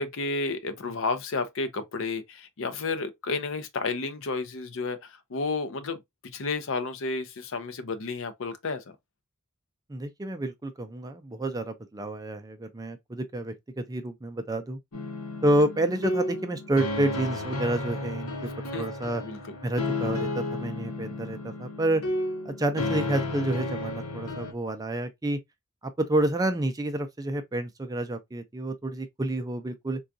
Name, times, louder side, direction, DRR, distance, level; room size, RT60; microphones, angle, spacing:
voice 1, 0.0-8.8 18.7-18.9 19.2-19.5, left 3 dB, 60° left, 0.6 m, -31 dB
voice 2, 9.9-14.8 15.4-19.2 19.6-22.0 22.5-25.4 26.1-30.0, right 1 dB, 15° right, 0.4 m, -29 dB
sound 1, 14.9-24.5, left 2 dB, 85° left, 0.9 m, -32 dB
3.7 x 2.3 x 2.5 m
head